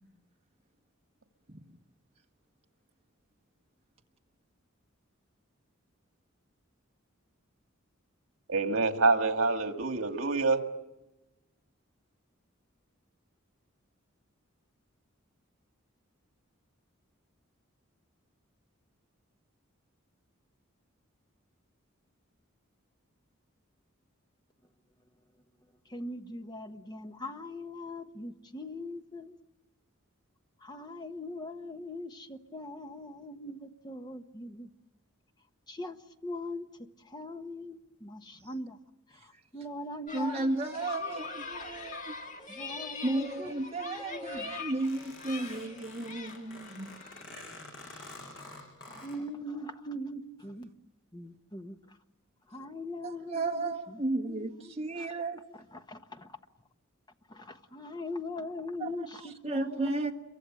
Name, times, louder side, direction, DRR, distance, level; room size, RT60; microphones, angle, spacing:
voice 1, 8.5-10.6, right 3 dB, 80° right, 1.8 m, -26 dB
voice 2, 25.9-29.4 30.6-34.7 35.7-36.7 37.0-38.8 39.2-40.5 41.1-41.3 42.5-43.5 43.8-44.6 47.7-50.7 51.1-52.0 52.5-55.1 55.7-56.4 57.3-60.1, left 1 dB, 20° left, 1.1 m, -41 dB
sound 1, 40.1-47.2, left 4 dB, 35° left, 1.7 m, -43 dB
voice 3, 40.1-42.2 43.0-46.9 53.0-55.4 58.8-58.9 59.4-60.1, right 2 dB, 30° right, 1.7 m, -33 dB
sound 2, 44.8-49.2, left 2 dB, 60° left, 6.9 m, -48 dB
27.5 x 23.5 x 7.7 m
head